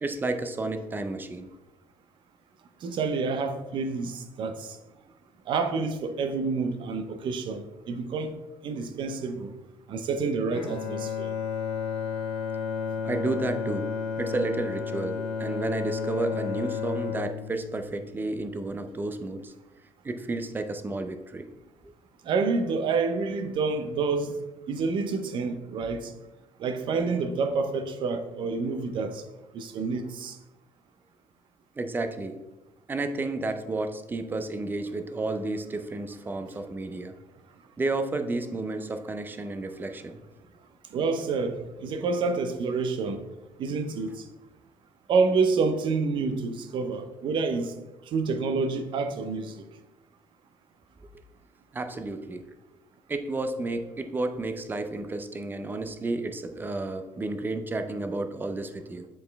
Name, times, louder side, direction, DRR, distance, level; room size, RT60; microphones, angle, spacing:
voice 1, 0.0-1.5 13.0-13.9 14.2-19.5 20.0-21.5 21.8-21.9 31.8-32.4 32.9-37.1 37.8-40.2 51.7-52.5 53.1-59.1, right 2 dB, 20° right, 0.5 m, -31 dB
voice 2, 2.8-4.7 5.5-7.6 7.9-8.3 8.6-9.6 9.9-11.3 22.3-24.4 24.7-26.1 26.6-29.2 29.5-30.4 40.9-43.3 43.6-44.2 45.1-47.7 48.1-49.6, right 4 dB, 55° right, 0.7 m, -28 dB
Bowed string instrument, 10.5-18.7, left 6 dB, 70° left, 1.2 m, -32 dB
7.6 x 4.3 x 3.4 m
cardioid pair, 125°, 10 cm